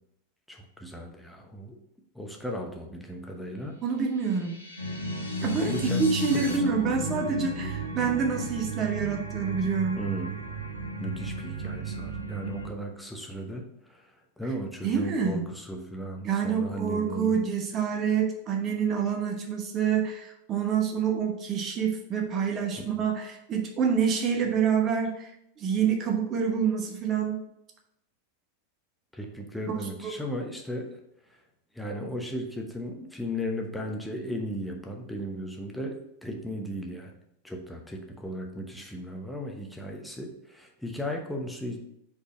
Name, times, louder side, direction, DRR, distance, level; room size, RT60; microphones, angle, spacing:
voice 1, 0.5-1.7 2.1-3.8 5.4-6.1 6.3-6.8 10.0-10.4 11.0-14.1 14.4-17.4 23.0-23.1 29.1-31.0 31.7-37.1 37.4-41.8, equal, 5° left, 1 dB, 1.0 m, -36 dB
sound 1, 3.8-6.6, left 2 dB, 80° left, 1.2 m, -43 dB
voice 2, 3.8-4.6 5.4-5.7 6.0-10.0 14.8-15.4 16.2-25.3 25.6-27.4 29.7-30.1, right 6 dB, 30° right, 3 dB, 1.0 m, -27 dB
sound 2, 4.8-12.7, right 1 dB, 85° right, 0.8 m, -33 dB
5.1 x 4.1 x 5.2 m, 0.80 s
figure-of-eight pair, 90°, 0 cm